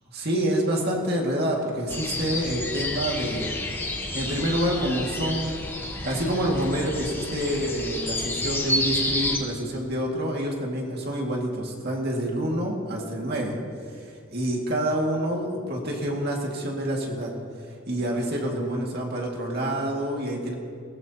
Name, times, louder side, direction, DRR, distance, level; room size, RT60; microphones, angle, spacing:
voice 1, 0.1-3.5 4.1-5.5 6.0-13.6 13.9-17.3 17.9-20.6, right 1 dB, 50° right, -1 dB, 2.2 m, -27 dB
sound 1, 1.9-9.4, left 1 dB, 10° left, 1.1 m, -30 dB
20.5 x 17.5 x 2.9 m, 2.3 s
head